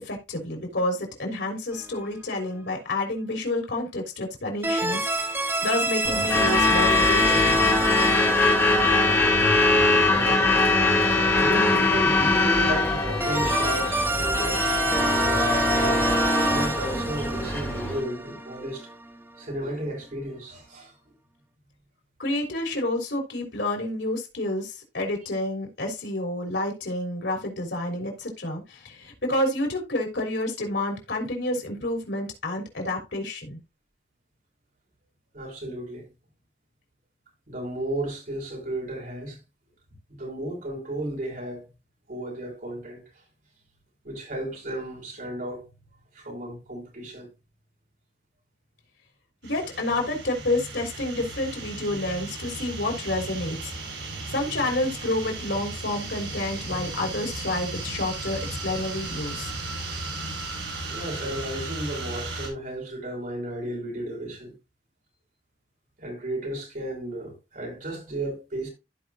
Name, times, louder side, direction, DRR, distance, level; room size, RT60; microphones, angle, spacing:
voice 1, 0.0-7.6 22.2-33.6 49.4-53.7 54.3-59.5, left 1 dB, 80° left, 3.4 m, -29 dB
sound 1, 1.7-2.2 4.6-10.5 13.2-19.1, right 1 dB, 15° right, 1.2 m, -27 dB
Truck / Alarm, 6.0-18.0, left 2 dB, 15° left, 3.0 m, -22 dB
voice 2, 9.9-10.6 11.4-16.2 16.5-18.9 19.4-20.9 35.3-36.0 37.5-39.4 40.1-41.6 42.1-43.0 44.0-45.7 46.1-47.3 59.9-60.1 60.9-64.5 66.0-68.7, right 1 dB, 50° right, 5.6 m, -34 dB
sound 2, 49.4-62.5, right 2 dB, 85° right, 4.9 m, -35 dB
15.0 x 5.3 x 2.6 m
head